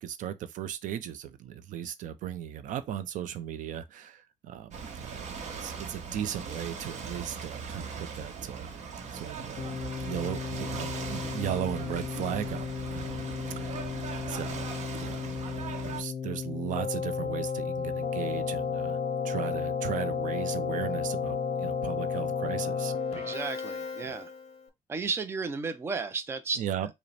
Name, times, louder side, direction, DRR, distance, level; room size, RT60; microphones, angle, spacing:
voice 1, 0.0-8.7 9.1-9.8 10.1-13.2 13.6-13.9 14.3-14.7 15.0-19.0 19.2-23.3 24.0-24.1 26.6-26.9, right 10 dB, 75° right, 0.5 m, -37 dB
Ocean / Boat Water vehicle, 4.7-16.0, right 5 dB, 60° right, 0.8 m, -39 dB
Keyboard (musical), 9.6-24.6, left 6 dB, 50° left, 0.7 m, -33 dB
voice 2, 23.1-24.3 24.9-26.6, right 4 dB, 20° right, 0.4 m, -33 dB
4.9 x 2.1 x 3.2 m
cardioid pair, 170°, 13 cm